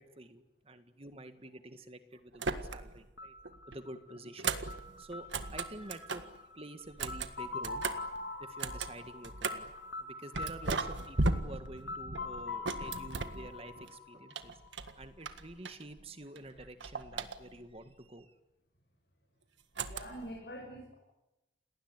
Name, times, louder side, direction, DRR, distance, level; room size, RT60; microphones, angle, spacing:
voice 1, 0.0-3.3 3.7-4.6 5.0-7.8 8.4-9.7 10.0-14.6 15.0-18.3, right 1 dB, 30° right, 9 dB, 1.8 m, -48 dB
sound 1, 2.3-3.1 3.4-6.4 6.8-9.8 10.3-13.9 14.3-16.1 16.3-17.8 19.7-20.4, right 3 dB, 75° right, 1.7 m, -37 dB
sound 2, 3.2-15.0, left 3 dB, 80° left, 2.7 m, -44 dB
voice 2, 19.7-20.9, equal, 55° left, 0 dB, 6.6 m, -46 dB
29.0 x 19.5 x 9.7 m, 0.99 s
head